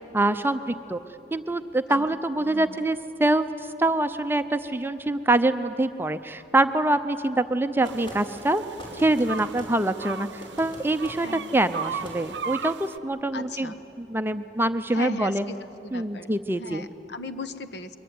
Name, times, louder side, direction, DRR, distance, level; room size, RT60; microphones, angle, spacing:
voice 1, 0.1-1.0 1.3-3.5 3.8-8.6 8.9-11.3 11.5-15.4 15.9-16.8, right 2 dB, 10° right, 10 dB, 0.6 m, -25 dB
voice 2, 2.4-2.9 11.2-11.5 13.3-13.8 14.9-15.6 15.8-16.3 16.6-18.0, left 2 dB, 70° left, 9 dB, 1.1 m, -37 dB
sound 1, 7.8-8.2 8.8-9.7 10.4-11.2 11.9-12.2, equal, 30° left, 5.6 m, -41 dB
sound 2, 7.8-13.0, right 6 dB, 75° right, 0.7 m, -37 dB
23.5 x 23.0 x 9.5 m, 2.9 s
head